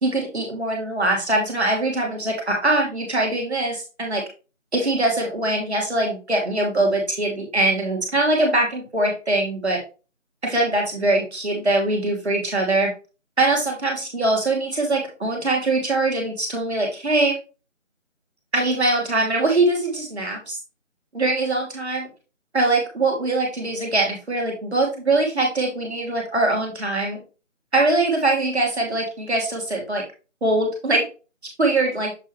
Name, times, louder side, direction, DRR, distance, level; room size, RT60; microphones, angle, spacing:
voice 1, 0.0-4.2 4.7-9.8 10.4-12.9 13.4-17.4 18.5-20.6 21.1-22.1 22.5-27.2 27.7-30.0 30.4-31.0 31.6-32.1, right 2 dB, ahead, -16 dB, 1.8 m, -22 dB
6.8 x 5.6 x 3.2 m, 0.32 s
figure-of-eight pair, 175°, 39 cm